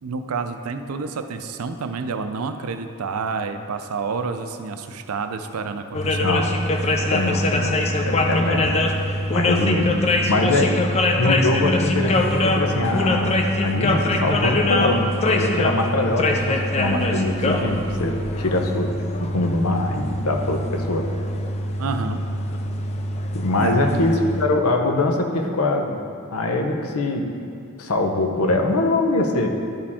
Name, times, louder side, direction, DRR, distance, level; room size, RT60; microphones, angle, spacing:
voice 1, 0.0-6.3 21.8-22.2 23.6-23.8, right 4 dB, 80° right, 8 dB, 0.5 m, -29 dB
sound 1, 5.9-24.4, left 1 dB, 30° left, 0.5 m, -23 dB
voice 2, 7.1-8.8 9.3-10.8 11.2-13.3 13.6-18.9 19.2-21.0 23.3-26.0 26.3-27.3 27.8-29.5, left 2 dB, 80° left, 4 dB, 0.8 m, -23 dB
11.0 x 4.9 x 3.5 m, 2.4 s
head